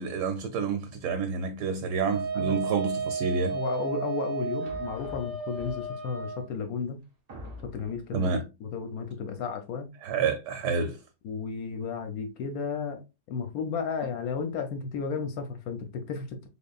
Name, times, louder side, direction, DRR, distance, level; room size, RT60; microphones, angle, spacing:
voice 1, 0.0-3.6 8.1-8.4 10.0-11.0, right 5 dB, 75° right, 1.1 m, -29 dB
Wind instrument woodwind instrument, 2.1-6.5, right 4 dB, 35° right, 0.9 m, -33 dB
voice 2, 3.5-7.0 7.6-8.3 8.6-9.9 11.2-13.0 13.3-16.5, left 5 dB, 70° left, 0.9 m, -33 dB
sound 1, 4.6-6.1 6.8-6.9 7.3-8.1, equal, 50° right, 0.4 m, -45 dB
3.7 x 3.4 x 2.2 m
omnidirectional pair, 1.9 m